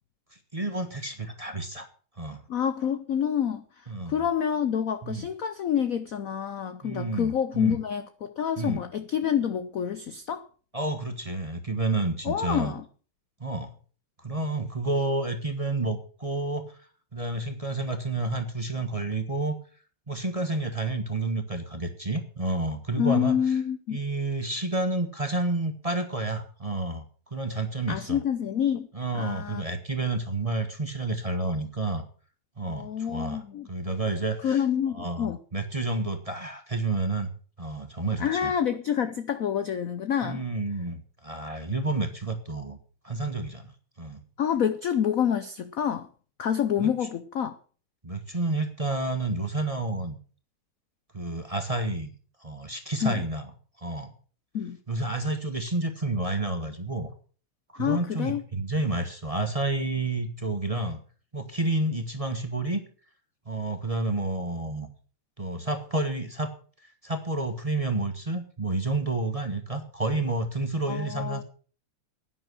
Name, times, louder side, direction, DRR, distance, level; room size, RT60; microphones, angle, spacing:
voice 1, 0.5-1.9 2.2-2.4 3.9-4.3 5.0-5.2 6.8-7.8 8.6-8.8 10.7-12.7 13.4-13.7 14.2-16.8 17.1-19.6 20.1-23.6 23.9-27.0 27.3-28.2 28.9-32.0 32.6-33.4 33.7-34.6 34.9-37.3 37.6-38.5 40.2-42.8 43.0-43.7 44.0-44.2 46.8-46.9 48.0-50.2 51.1-52.1 52.4-53.4 53.8-54.1 54.9-57.1 57.7-61.0 61.3-62.8 63.4-64.9 65.4-66.5 67.0-71.4, right 2 dB, 20° right, 6 dB, 1.1 m, -30 dB
voice 2, 2.5-10.5 12.2-12.8 23.0-24.0 27.9-28.9 29.1-29.6 32.6-33.7 34.4-35.4 38.2-40.4 44.4-46.1 46.4-47.6 53.0-53.2 54.5-54.8 57.8-58.4 70.9-71.4, left 8 dB, 70° left, 11 dB, 0.8 m, -27 dB
11.0 x 9.9 x 6.5 m, 0.41 s
omnidirectional pair, 2.4 m